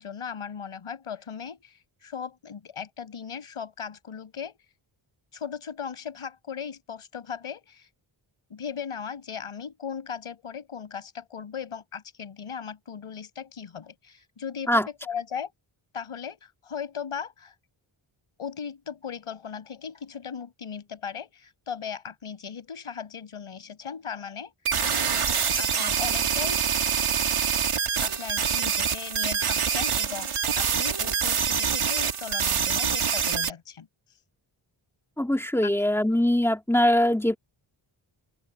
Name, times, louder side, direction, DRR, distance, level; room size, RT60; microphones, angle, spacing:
voice 1, 0.0-4.6 5.3-7.9 8.5-15.5 15.9-17.5 18.4-24.5 25.6-26.7 28.0-33.9 35.6-35.7, left 7 dB, 85° left, 5.9 m, -37 dB
sound 1, 24.7-33.5, right 7 dB, 85° right, 3.2 m, -25 dB
voice 2, 35.2-37.4, left 1 dB, 5° left, 2.2 m, -22 dB
open air
wide cardioid pair, 95°, 50 cm